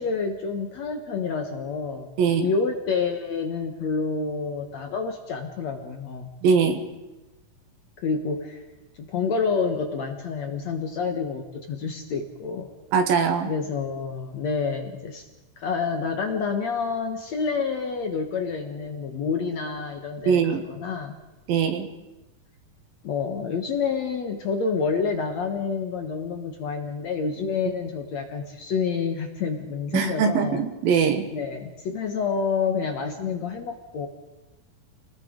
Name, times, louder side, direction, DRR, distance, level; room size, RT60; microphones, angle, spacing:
voice 1, 0.0-2.1 2.4-6.3 8.0-8.6 9.0-12.7 13.5-15.3 15.6-21.2 23.0-30.6 31.3-34.1, left 5 dB, 55° left, 4 dB, 2.1 m, -28 dB
voice 2, 2.2-2.5 6.4-6.8 12.9-13.5 20.3-20.6 21.5-21.9 29.9-31.2, right 6 dB, 70° right, 7 dB, 3.1 m, -21 dB
29.5 x 20.0 x 5.2 m, 1.0 s
omnidirectional pair, 4.5 m